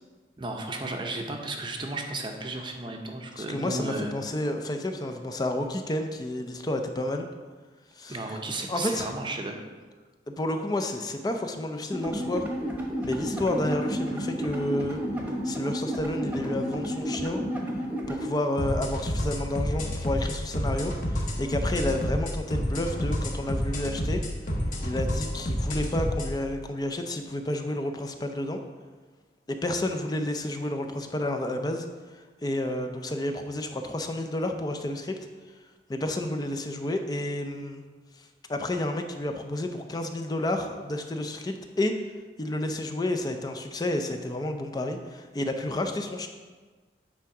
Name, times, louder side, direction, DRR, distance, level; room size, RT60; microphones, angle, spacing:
voice 1, 0.4-4.1 8.1-9.6, right 2 dB, 25° right, 3 dB, 0.6 m, -34 dB
voice 2, 3.4-7.3 8.0-8.4 8.7-9.1 10.3-12.4 13.0-15.0 15.4-17.4 18.1-24.2 24.8-28.6 29.5-31.9 32.4-35.2 35.9-37.8 38.5-41.9 42.4-46.3, left 1 dB, 20° left, 5 dB, 0.4 m, -30 dB
sound 1, 11.9-18.3, equal, 10° right, 1.0 m, -31 dB
sound 2, 18.6-26.3, equal, 45° left, 1.0 m, -29 dB
8.6 x 3.5 x 4.8 m, 1.4 s
head